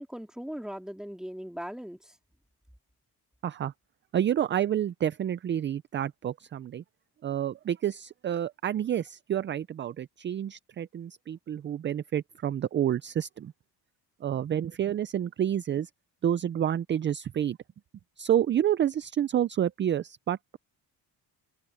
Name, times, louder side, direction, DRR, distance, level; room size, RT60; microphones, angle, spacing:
voice 1, 0.0-2.2, equal, ahead, 2.7 m, -39 dB
voice 2, 3.4-3.7 4.1-6.8 7.2-13.5 14.2-15.9 16.2-17.6 18.2-20.6, right 10 dB, 30° right, 0.4 m, -29 dB
cardioid pair, 125°, 39 cm